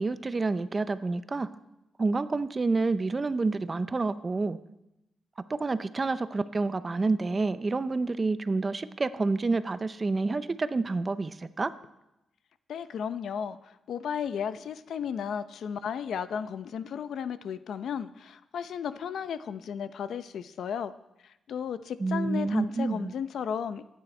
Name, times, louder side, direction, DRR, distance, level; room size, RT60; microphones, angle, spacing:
voice 1, 0.0-1.5 2.0-4.6 5.6-11.7 22.0-23.1, right 3 dB, 25° right, 13 dB, 0.6 m, -28 dB
voice 2, 12.7-20.9 21.2-23.8, left 7 dB, 75° left, 12 dB, 0.6 m, -34 dB
24.0 x 9.4 x 4.3 m, 0.91 s
wide cardioid pair, 140°, 0 cm